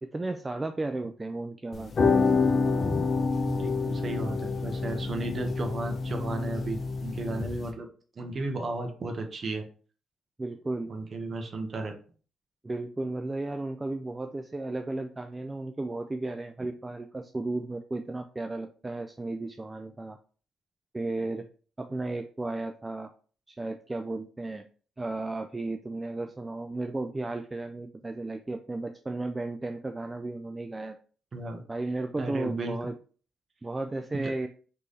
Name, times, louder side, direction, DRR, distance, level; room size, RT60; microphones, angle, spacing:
voice 1, 0.0-1.9 10.4-10.9 12.6-20.2 20.9-21.4 21.8-23.1 23.5-24.7 25.0-31.0 31.7-32.9 33.6-34.5, right 2 dB, 20° right, 6 dB, 0.3 m, -34 dB
sound 1, 1.7-7.7, left 4 dB, 40° left, 0.8 m, -27 dB
voice 2, 3.5-7.9 8.2-9.7 10.9-11.9 31.3-31.6 32.2-32.8 34.1-34.5, right 2 dB, 40° right, 4 dB, 1.1 m, -34 dB
3.4 x 3.3 x 4.1 m, 0.41 s
cardioid pair, 90°, 0 cm